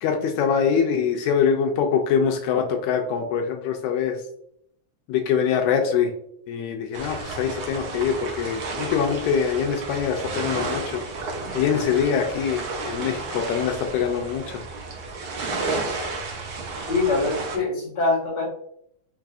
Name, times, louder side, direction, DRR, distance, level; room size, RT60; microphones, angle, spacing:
voice 1, 0.0-4.2 5.1-6.1 6.5-11.0 11.5-14.6, left 7 dB, 80° left, 3 dB, 1.9 m, -24 dB
sound 1, 6.9-17.6, right 3 dB, 70° right, 1.1 m, -32 dB
voice 2, 16.9-18.4, left 3 dB, 45° left, -6 dB, 0.5 m, -23 dB
4.7 x 4.5 x 2.5 m, 0.70 s
omnidirectional pair, 3.4 m